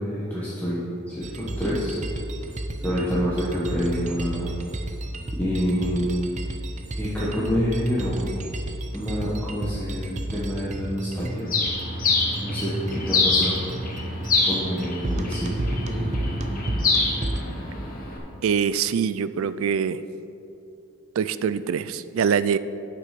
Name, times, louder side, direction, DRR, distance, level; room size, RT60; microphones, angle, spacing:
voice 1, 0.0-2.0 2.8-4.5 5.4-6.1 7.0-8.3 8.9-11.4 12.4-13.6 14.4-15.5, equal, 5° left, -9 dB, 1.2 m, -27 dB
sound 1, 1.2-17.4, right 1 dB, 35° right, 0.6 m, -32 dB
Bird, 11.5-18.2, left 3 dB, 40° left, 1.5 m, -26 dB
voice 2, 18.4-20.0 21.2-22.6, right 7 dB, 70° right, 15 dB, 0.4 m, -24 dB
9.6 x 6.1 x 5.9 m, 2.8 s
head